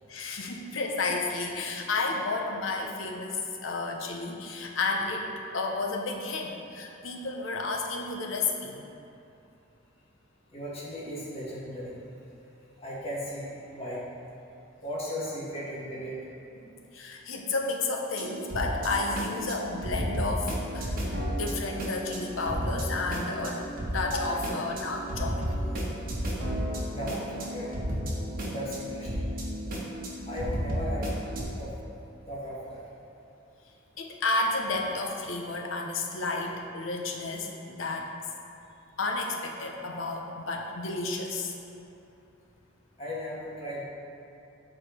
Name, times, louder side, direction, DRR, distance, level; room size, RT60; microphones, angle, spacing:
voice 1, 0.1-5.3 5.5-8.8 16.5-21.0 21.3-25.9 34.0-38.1 39.0-41.5, left 3 dB, 85° left, 1 dB, 0.8 m, -32 dB
voice 2, 10.5-12.0 12.8-14.0 14.8-16.2 26.9-27.7 28.5-29.3 30.2-31.1 31.6-31.7 32.3-32.8 43.0-43.8, equal, 30° left, -7 dB, 1.8 m, -36 dB
sound 1, 18.1-31.4, equal, 45° right, 1.3 m, -33 dB
8.3 x 4.9 x 4.3 m, 2.8 s
head